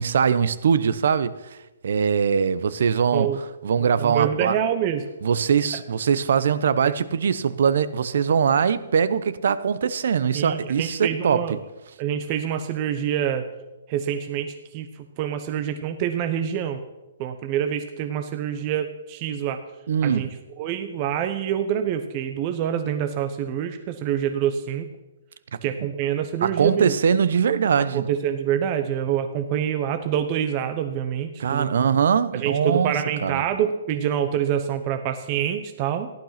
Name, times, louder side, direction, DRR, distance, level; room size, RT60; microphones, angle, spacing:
voice 1, 0.0-1.3 1.8-4.5 5.2-11.5 19.9-20.3 26.4-28.0 31.4-33.4, right 7 dB, 60° right, 0.9 m, -22 dB
voice 2, 4.0-5.0 6.8-7.0 10.3-11.6 12.0-13.5 13.9-14.9 15.2-16.8 17.2-19.6 20.0-20.3 20.6-24.9 25.6-26.9 27.9-31.7 32.3-36.1, right 9 dB, 25° right, 0.9 m, -26 dB
14.5 x 11.5 x 5.8 m
hypercardioid pair, 165°, 0 cm